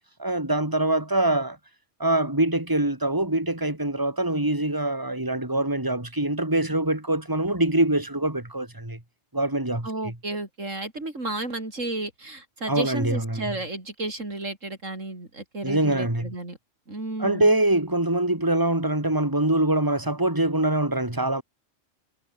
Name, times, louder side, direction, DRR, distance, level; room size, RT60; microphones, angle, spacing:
voice 1, 0.2-1.6 2.0-9.0 9.3-10.1 12.7-13.5 15.6-16.3 17.2-21.4, right 1 dB, 15° right, 3.7 m, -24 dB
voice 2, 9.8-16.6 16.9-17.6, right 2 dB, 90° right, 5.8 m, -33 dB
omnidirectional pair, 1.3 m